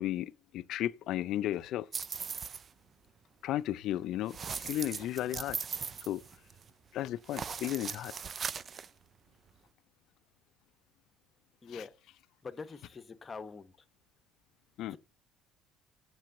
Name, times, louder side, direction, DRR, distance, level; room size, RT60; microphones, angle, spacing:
voice 1, 0.0-1.9 3.4-5.6 6.1-6.2 6.9-8.1 11.7-11.8 14.8-15.0, left 13 dB, 65° left, 0.4 m, -34 dB
sound 1, 1.9-2.7 4.3-6.7 7.2-8.9, right 6 dB, 40° right, 0.4 m, -39 dB
voice 2, 11.6-11.9 12.4-13.7 14.9-15.0, left 4 dB, 30° left, 0.9 m, -44 dB
7.5 x 6.1 x 6.5 m
supercardioid pair, 85°, 0 cm